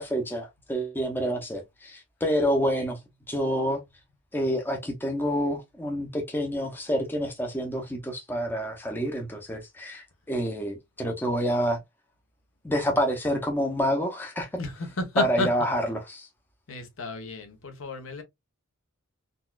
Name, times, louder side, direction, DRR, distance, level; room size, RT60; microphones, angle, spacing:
voice 1, 0.0-3.0 3.3-3.8 4.3-11.8 12.6-14.5 15.2-16.3, equal, 10° left, 0.5 m, -28 dB
voice 2, 14.6-15.5 16.7-18.2, left 2 dB, 60° left, 0.9 m, -31 dB
3.9 x 2.3 x 2.3 m
head